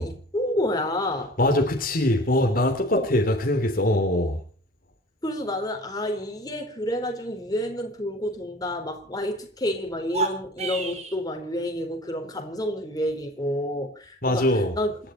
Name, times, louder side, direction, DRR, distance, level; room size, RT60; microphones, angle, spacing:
voice 1, 0.0-1.3 2.9-3.2 5.2-15.0, left 1 dB, 20° left, 4.2 m, -29 dB
voice 2, 1.4-4.4 14.2-14.7, left 1 dB, 55° left, 2.9 m, -22 dB
sound 1, 10.0-11.2, right 4 dB, 40° right, 4.2 m, -29 dB
28.0 x 11.5 x 4.3 m
head